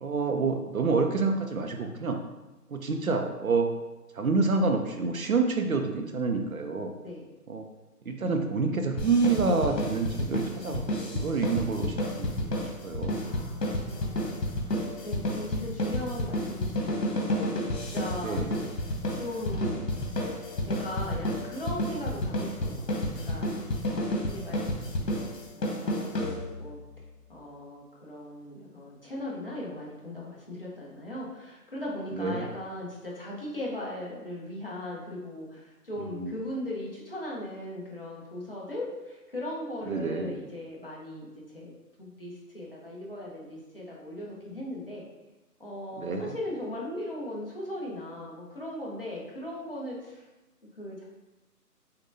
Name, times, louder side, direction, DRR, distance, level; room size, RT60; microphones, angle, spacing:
voice 1, 0.0-2.2 2.7-3.7 4.1-6.9 7.5-7.7 8.1-10.8 11.1-13.2 18.2-18.6 32.1-32.5 36.1-36.3 39.9-40.4 46.0-46.3, right 4 dB, 60° right, 5 dB, 0.5 m, -28 dB
sound 1, 9.0-26.7, left 1 dB, 85° left, 1.3 m, -31 dB
voice 2, 13.2-17.3 17.9-19.9 20.3-24.6 25.5-26.8 27.3-41.7 42.0-45.1 45.6-50.2 50.8-51.0, left 1 dB, 35° left, -5 dB, 0.8 m, -38 dB
6.4 x 2.2 x 2.6 m, 1.1 s
hypercardioid pair, 180°, 48 cm